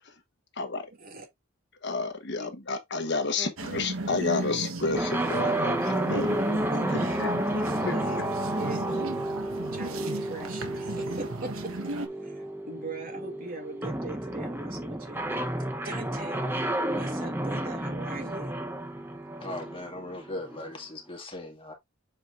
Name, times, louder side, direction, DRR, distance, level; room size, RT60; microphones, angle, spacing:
voice 1, 0.6-0.9 1.8-6.3 6.7-7.9, left 3 dB, 55° left, 1.2 m, -31 dB
sound 1, 3.6-12.1, right 2 dB, 80° right, 1.2 m, -35 dB
sound 2, 4.9-20.7, right 1 dB, 10° right, 0.8 m, -31 dB
voice 2, 6.7-7.2 7.5-7.6 7.9-8.2 8.6-9.3 9.7-16.4 16.9-18.6, right 2 dB, 45° right, 2.4 m, -41 dB
voice 3, 19.4-21.7, left 2 dB, 25° left, 2.1 m, -38 dB
7.7 x 4.8 x 2.5 m
head